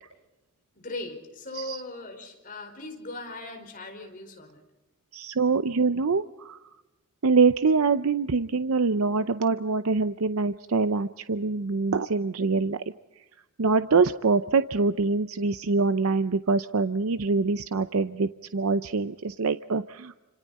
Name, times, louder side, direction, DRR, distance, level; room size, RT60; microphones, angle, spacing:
voice 1, 0.8-4.6, left 2 dB, 40° left, 4 dB, 4.8 m, -39 dB
voice 2, 5.1-6.6 7.2-12.8 13.6-20.1, right 4 dB, 75° right, 11 dB, 0.7 m, -24 dB
29.5 x 27.0 x 4.2 m, 1.1 s
head